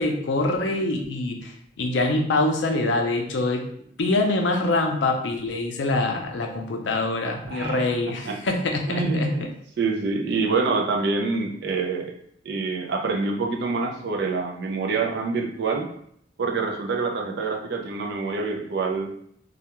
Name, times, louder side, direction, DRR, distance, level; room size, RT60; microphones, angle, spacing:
voice 1, 0.0-3.6 4.0-9.5, left 2 dB, 70° left, 3 dB, 0.4 m, -24 dB
voice 2, 7.5-7.8 8.3-8.4 8.9-9.4 9.8-12.1 12.4-15.9 16.4-19.1, right 4 dB, 60° right, 2 dB, 0.4 m, -26 dB
2.3 x 2.2 x 2.9 m, 0.67 s
head